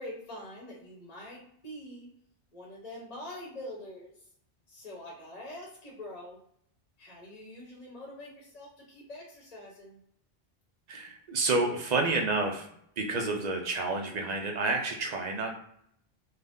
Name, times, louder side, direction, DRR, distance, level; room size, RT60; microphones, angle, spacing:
voice 1, 0.0-2.1 2.5-4.2 4.7-6.4 7.0-10.0, left 1 dB, 40° left, -3 dB, 0.7 m, -44 dB
voice 2, 10.9-12.7 13.0-15.5, right 3 dB, 55° right, 2 dB, 0.5 m, -29 dB
2.5 x 2.1 x 3.4 m, 0.69 s
omnidirectional pair, 1.1 m